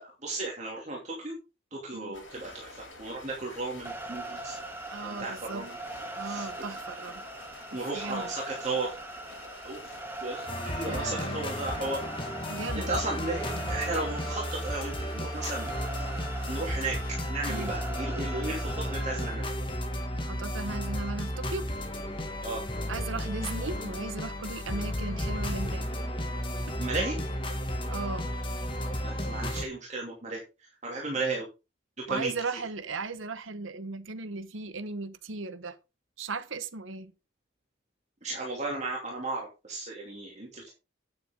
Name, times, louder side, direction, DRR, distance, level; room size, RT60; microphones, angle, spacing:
voice 1, 0.0-1.3 1.7-4.6 5.0-5.8 6.2-6.6 7.7-9.0 9.6-9.9 10.2-12.0 12.7-15.7 16.5-19.5 22.4-22.6 26.8-27.2 29.0-30.4 30.8-31.5 32.1-32.3 38.2-40.7, right 2 dB, 35° right, 2.7 m, -34 dB
sound 1, 2.1-17.1, left 2 dB, 70° left, 6.4 m, -48 dB
sound 2, 3.9-19.3, right 2 dB, 10° right, 1.1 m, -41 dB
voice 2, 4.9-5.7 6.1-7.2 7.7-8.3 10.8-11.6 12.5-12.9 17.5-17.7 20.1-21.7 22.9-25.9 27.9-28.3 32.1-35.8 36.2-37.1, right 3 dB, 80° right, 1.0 m, -37 dB
sound 3, 10.5-29.7, equal, 25° left, 1.9 m, -33 dB
9.5 x 9.0 x 3.7 m
head